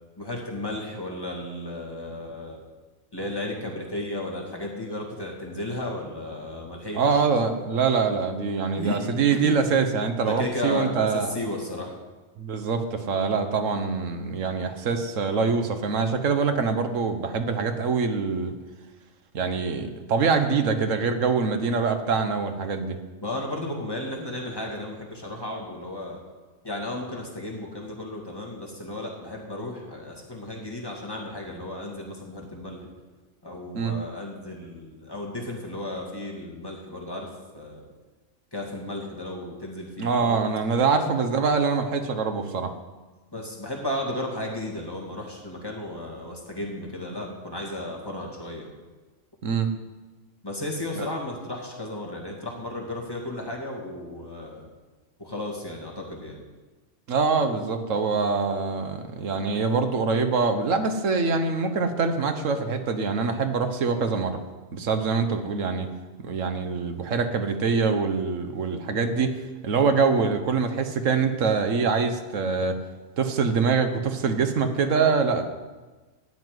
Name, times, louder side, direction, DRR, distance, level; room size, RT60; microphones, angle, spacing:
voice 1, 0.2-2.6 3.1-7.2 8.8-9.0 9.4-9.6 10.2-11.9 23.2-26.2 26.6-32.9 33.4-37.3 37.5-37.8 38.5-40.4 43.3-48.7 50.4-54.6 55.2-56.4 59.5-59.6, left 1 dB, 20° left, -2 dB, 2.2 m, -34 dB
voice 2, 6.9-11.3 12.4-18.5 19.3-23.0 33.7-34.0 40.0-42.7 49.4-49.7 51.0-51.1 57.1-64.4 64.7-65.9 66.2-69.3 69.6-72.8 73.2-75.5, right 5 dB, 85° right, 8 dB, 1.4 m, -24 dB
12.5 x 5.8 x 9.3 m, 1.3 s
omnidirectional pair, 1.3 m